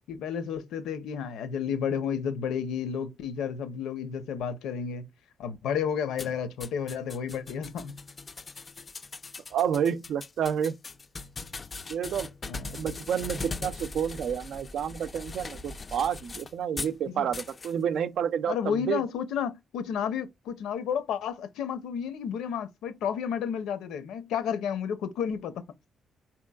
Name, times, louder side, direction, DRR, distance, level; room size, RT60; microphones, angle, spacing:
voice 1, 0.1-5.1 5.4-7.9 12.4-12.8 17.1-17.3 18.5-25.7, left 7 dB, 85° left, 0.7 m, -31 dB
sound 1, 6.2-17.0 17.3-17.7, left 3 dB, 35° left, 0.3 m, -40 dB
voice 2, 9.5-10.7 11.9-12.3 12.7-19.0, right 8 dB, 70° right, 0.5 m, -29 dB
4.5 x 2.9 x 2.3 m
cardioid pair, 95°, 0 cm